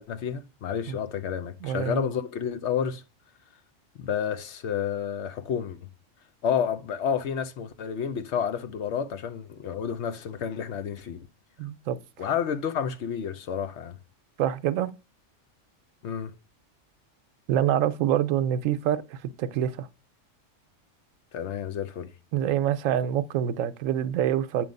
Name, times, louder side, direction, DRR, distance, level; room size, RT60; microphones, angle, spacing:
voice 1, 0.0-3.0 4.0-5.8 6.4-11.3 12.2-14.0 16.0-16.3 21.3-22.1, left 8 dB, 65° left, 0.9 m, -30 dB
voice 2, 1.6-2.1 11.6-12.0 14.4-14.9 17.5-19.9 22.3-24.7, right 10 dB, 85° right, 1.0 m, -26 dB
8.6 x 3.1 x 5.2 m
omnidirectional pair, 1.3 m